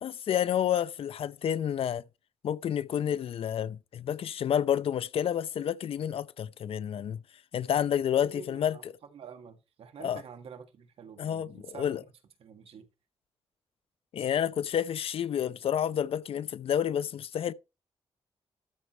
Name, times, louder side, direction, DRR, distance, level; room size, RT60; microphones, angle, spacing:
voice 1, 0.0-2.0 2.4-7.2 7.5-8.9 10.0-10.2 11.2-12.0 14.1-17.5, left 9 dB, 70° left, 0.6 m, -29 dB
voice 2, 8.2-8.8 9.1-12.0 12.4-12.9, right 7 dB, 80° right, 1.9 m, -48 dB
13.0 x 4.7 x 4.4 m
wide cardioid pair, 130°, 10 cm